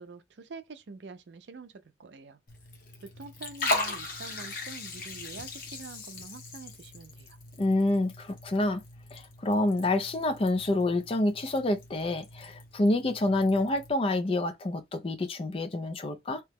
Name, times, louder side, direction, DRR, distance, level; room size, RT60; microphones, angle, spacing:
voice 1, 0.0-1.7 2.0-2.4 3.0-7.4, right 4 dB, 70° right, 0.5 m, -46 dB
Liquid, 2.5-13.9, left 2 dB, 50° left, 0.9 m, -39 dB
voice 2, 7.6-8.8 9.1-16.4, left 2 dB, 30° left, 0.4 m, -27 dB
2.9 x 2.1 x 3.4 m
head